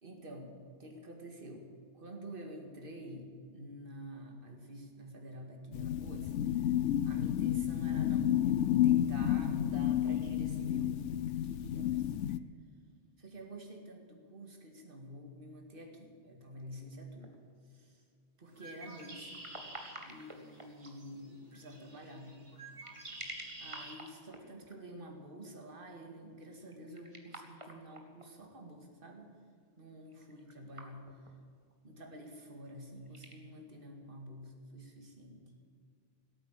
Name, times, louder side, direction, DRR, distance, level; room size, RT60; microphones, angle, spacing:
voice 1, 0.0-0.5 0.8-6.7 7.0-12.3 13.2-17.4 17.7-18.0 18.4-19.4 20.1-22.4 23.6-29.4 29.8-31.1 31.8-35.4, equal, 50° right, 2 dB, 2.3 m, -48 dB
sound 1, 5.7-12.4, left 11 dB, 85° left, 0.9 m, -31 dB
sound 2, 17.0-17.5 19.1-21.1 22.5-24.8 26.7-28.3 30.1-31.4 31.7-31.8 32.9-33.4, right 1 dB, 25° right, 1.9 m, -50 dB
Bird, 18.5-24.0, right 2 dB, 75° right, 2.6 m, -50 dB
17.5 x 9.1 x 8.8 m, 2.3 s
omnidirectional pair, 1.2 m